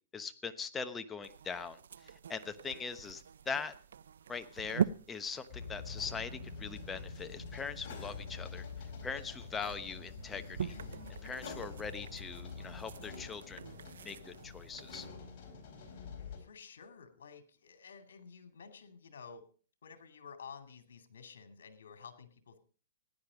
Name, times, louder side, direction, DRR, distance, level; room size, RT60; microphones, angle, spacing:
voice 1, 0.1-3.7 4.3-8.7 9.0-10.7 11.2-13.6 14.0-15.1, left 5 dB, 15° left, 10 dB, 1.0 m, -41 dB
sound 1, 1.2-15.1, right 8 dB, 80° right, 0.6 m, -44 dB
sound 2, 5.5-16.4, left 5 dB, 45° left, 4.4 m, -46 dB
voice 2, 16.4-19.4 19.8-22.6, left 6 dB, 80° left, 8 dB, 2.4 m, -52 dB
15.5 x 10.5 x 5.1 m, 0.42 s
hypercardioid pair, 145°, 0 cm